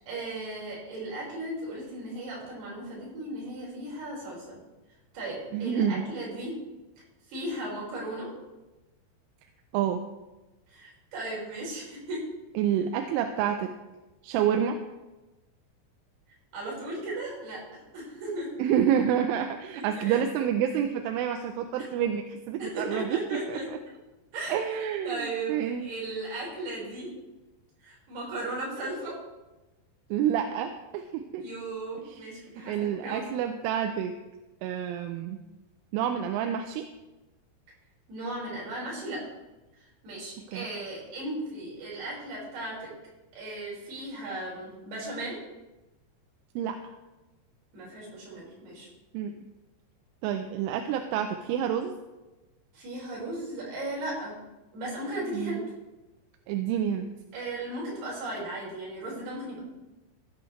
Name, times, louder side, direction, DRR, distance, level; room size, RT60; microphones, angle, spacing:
voice 1, 0.1-4.6 5.1-6.5 7.3-8.3 10.7-12.2 16.5-18.5 19.7-20.2 22.6-23.7 24.3-24.6 25.0-27.1 27.8-29.2 31.4-33.4 38.1-39.2 39.8-42.9 43.3-45.4 47.7-48.9 52.7-54.4 54.7-55.6 57.3-59.6, right 2 dB, 50° right, -5 dB, 6.7 m, -36 dB
voice 2, 5.5-6.0 9.7-10.0 12.6-13.7 14.2-14.8 18.6-23.2 23.5-23.8 24.5-25.9 30.1-31.4 32.1-32.3 32.7-34.2 34.6-35.4 35.9-36.9 40.5-40.7 46.6-46.8 49.1-49.3 50.2-52.0 55.3-55.7 56.5-57.1, right 9 dB, 80° right, 6 dB, 3.0 m, -28 dB
16.0 x 11.0 x 3.2 m, 1.1 s
omnidirectional pair, 5.9 m